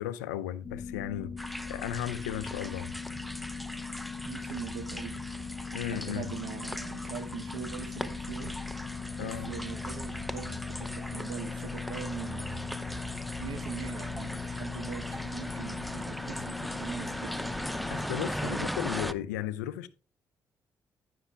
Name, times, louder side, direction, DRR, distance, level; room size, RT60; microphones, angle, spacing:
voice 1, 0.0-2.9 5.7-6.3 9.2-9.5 17.9-19.9, left 12 dB, 90° left, 0.5 m, -35 dB
sound 1, 0.6-18.1, left 6 dB, 30° left, 0.4 m, -40 dB
sound 2, 1.4-19.1, equal, ahead, 0.7 m, -39 dB
sound 3, 2.9-3.6 4.0-4.1 4.5-19.3, right 2 dB, 35° right, 2.4 m, -56 dB
voice 2, 4.3-5.3 5.9-8.6 9.2-12.7 13.0-17.5 18.4-18.7, right 10 dB, 70° right, 0.8 m, -42 dB
14.5 x 5.9 x 2.3 m
hypercardioid pair, 45°, 9 cm